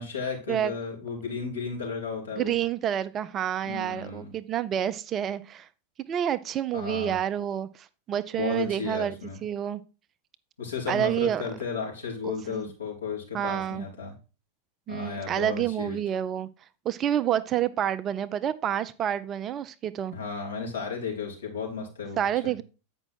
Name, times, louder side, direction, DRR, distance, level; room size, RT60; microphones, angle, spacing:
voice 1, 0.0-2.6 3.6-4.3 6.7-7.2 8.3-9.4 10.6-14.1 14.9-16.0 20.1-22.2 22.4-22.5, left 5 dB, 70° left, 3.3 m, -34 dB
voice 2, 2.4-5.7 6.1-9.1 9.4-9.8 10.9-11.4 12.2-12.7 13.3-13.9 14.9-16.5 16.8-20.1 22.2-22.6, right 10 dB, 30° right, 0.5 m, -28 dB
8.8 x 5.3 x 4.5 m
figure-of-eight pair, 90°, 0 cm